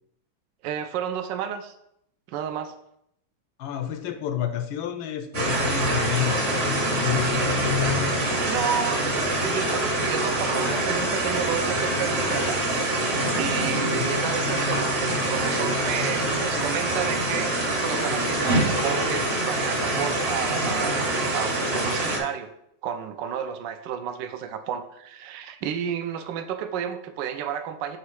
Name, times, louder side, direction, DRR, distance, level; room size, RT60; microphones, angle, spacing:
voice 1, 0.6-1.7 2.3-2.7 8.5-12.6 12.9-22.5 22.8-28.0, right 8 dB, 70° right, 7 dB, 1.2 m, -31 dB
voice 2, 3.6-7.7 13.7-14.1, left 10 dB, 80° left, 9 dB, 1.4 m, -30 dB
sound 1, 5.3-22.2, right 1 dB, 35° right, 1.2 m, -25 dB
7.4 x 3.1 x 4.7 m, 0.75 s
omnidirectional pair, 2.3 m